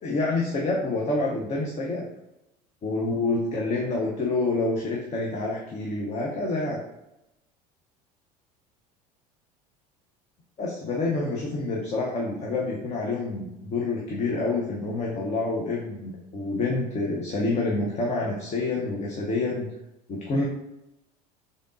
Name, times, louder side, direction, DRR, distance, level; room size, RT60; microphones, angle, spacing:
voice 1, 0.0-2.0 2.8-6.8 10.6-19.7 20.1-20.4, left 2 dB, 35° left, -2 dB, 0.8 m, -27 dB
3.8 x 3.6 x 2.5 m, 0.89 s
hypercardioid pair, 75°, 20 cm